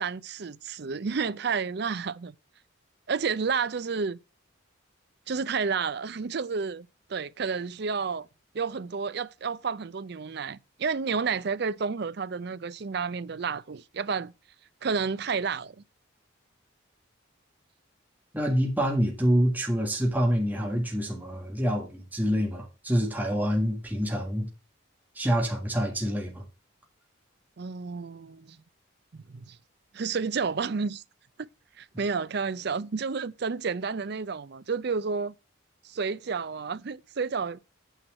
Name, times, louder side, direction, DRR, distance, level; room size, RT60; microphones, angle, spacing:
voice 1, 0.0-2.3 3.1-4.2 5.3-8.3 8.5-14.3 14.8-15.8 27.6-28.6 29.1-29.6 29.9-31.0 31.8-35.3 35.8-37.6, right 5 dB, 55° right, 0.5 m, -31 dB
voice 2, 18.3-24.5 25.1-26.4, equal, 10° right, 1.7 m, -26 dB
9.1 x 4.6 x 7.5 m
head